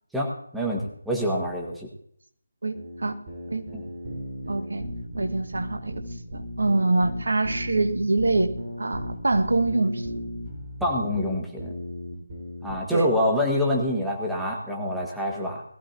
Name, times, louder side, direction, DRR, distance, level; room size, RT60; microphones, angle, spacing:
voice 1, 0.1-1.9 3.7-3.8 10.8-11.7 12.6-15.6, left 1 dB, ahead, -2 dB, 1.6 m, -26 dB
voice 2, 2.6-3.1 3.5-3.7 4.5-4.8 5.2-6.0 6.3-10.1 12.9-13.1, right 2 dB, 60° right, 7 dB, 1.3 m, -25 dB
sound 1, 2.7-12.7, equal, 30° right, 3.7 m, -36 dB
20.5 x 14.5 x 2.7 m, 0.67 s
figure-of-eight pair, 155°, 0 cm